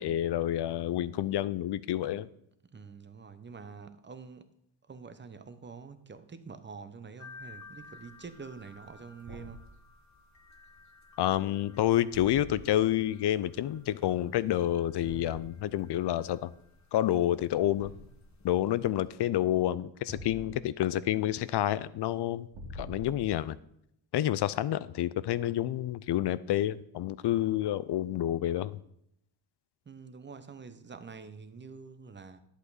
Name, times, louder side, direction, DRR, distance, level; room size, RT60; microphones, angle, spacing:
voice 1, 0.0-2.3 11.2-16.5 16.9-17.9 18.4-22.5 22.7-23.6 24.1-28.8, left 12 dB, 60° left, 18 dB, 0.6 m, -29 dB
voice 2, 2.7-4.5 4.9-9.6 29.9-32.4, right 5 dB, 25° right, 11 dB, 0.9 m, -46 dB
sound 1, 7.2-19.1, left 3 dB, 35° left, 1.5 m, -56 dB
Thump thud, 9.2-9.7 12.1-12.8 15.0-15.5 17.8-18.3 20.1-20.7 22.5-23.5, equal, 60° right, 2.2 m, -45 dB
11.0 x 8.2 x 4.1 m, 0.74 s
cardioid pair, 100°, 48 cm